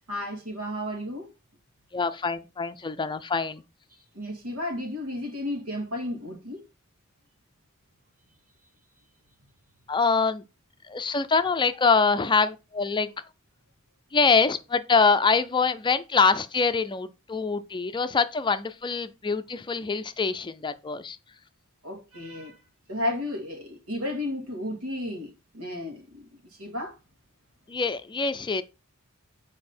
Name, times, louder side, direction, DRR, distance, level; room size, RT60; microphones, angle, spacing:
voice 1, 0.1-1.3 4.1-6.6 21.8-22.6 22.9-26.3 26.6-27.0, left 1 dB, 90° right, 2.3 m, -33 dB
voice 2, 1.9-3.6 9.9-10.4 10.8-13.1 14.1-21.2 27.7-28.6, left 4 dB, 20° left, 0.5 m, -24 dB
7.5 x 4.8 x 4.3 m
head